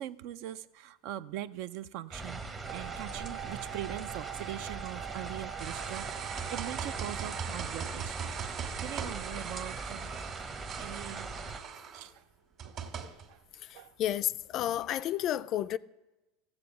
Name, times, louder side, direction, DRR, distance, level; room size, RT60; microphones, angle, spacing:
voice 1, 0.0-8.5 8.8-10.1 10.8-11.3 11.9-12.2 12.6-12.9 13.3-13.4 13.7-13.9, right 13 dB, 55° right, 0.5 m, -42 dB
sound 1, 2.1-11.6, right 3 dB, 20° right, 0.9 m, -41 dB
Wind instrument woodwind instrument, 2.6-7.5, right 20 dB, 80° right, 0.8 m, -44 dB
sound 2, 5.6-12.1 12.6-13.3 14.7-14.8, right 7 dB, 40° right, 1.8 m, -40 dB
voice 2, 14.0-15.8, left 12 dB, 40° left, 0.4 m, -31 dB
15.0 x 7.8 x 7.0 m
supercardioid pair, 150°, 0 cm